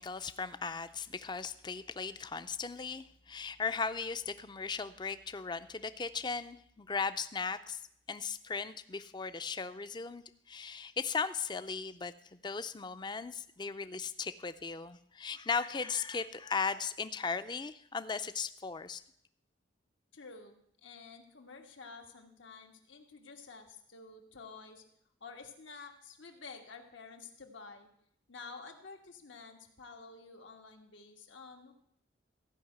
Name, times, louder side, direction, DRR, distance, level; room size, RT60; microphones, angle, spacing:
voice 1, 0.0-7.8 8.1-19.0, left 5 dB, 25° left, 12 dB, 0.4 m, -37 dB
voice 2, 20.1-20.5 20.8-24.8 25.2-27.9 28.3-31.7, left 4 dB, 85° left, 3 dB, 1.6 m, -50 dB
15.0 x 5.6 x 8.0 m, 0.71 s
head